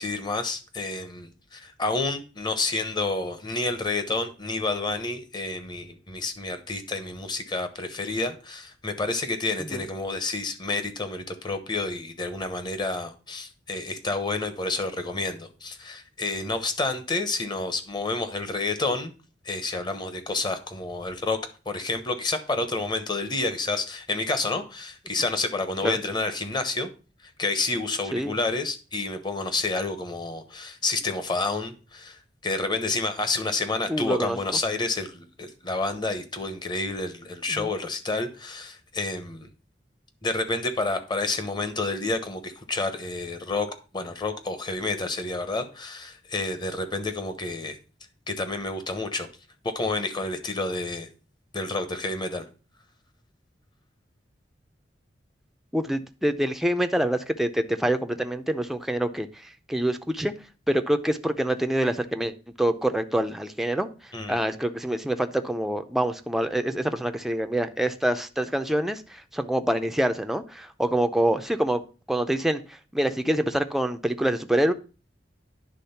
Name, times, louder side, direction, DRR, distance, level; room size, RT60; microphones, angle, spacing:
voice 1, 0.0-19.1 19.4-21.4 21.7-26.9 27.4-39.5 40.2-43.7 43.9-47.8 48.3-49.3 49.6-51.1 51.5-52.5 64.1-64.4, left 3 dB, 25° left, 1.0 m, -29 dB
voice 2, 33.9-34.4 37.5-37.7 55.7-60.3 60.7-71.8 72.1-74.7, right 1 dB, ahead, 0.5 m, -26 dB
10.0 x 3.6 x 5.6 m
head